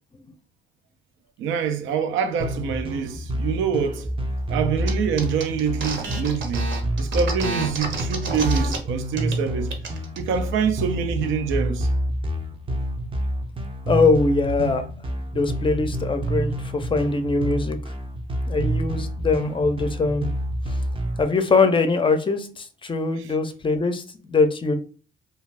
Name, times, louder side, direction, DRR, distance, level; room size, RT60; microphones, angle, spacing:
voice 1, 1.4-4.1 4.5-9.8 10.2-11.9 23.2-23.3, right 6 dB, 85° right, 0.4 m, -26 dB
sound 1, 2.4-21.2, right 1 dB, 25° right, 0.5 m, -28 dB
sound 2, 4.9-5.0 5.2-8.8 9.1-9.4 9.7-10.2, right 4 dB, 65° right, 0.8 m, -30 dB
voice 2, 13.9-14.8 15.3-17.8 18.5-20.3 21.2-24.7, left 3 dB, 25° left, 0.5 m, -22 dB
2.4 x 2.3 x 3.2 m
cardioid pair, 90°, 20 cm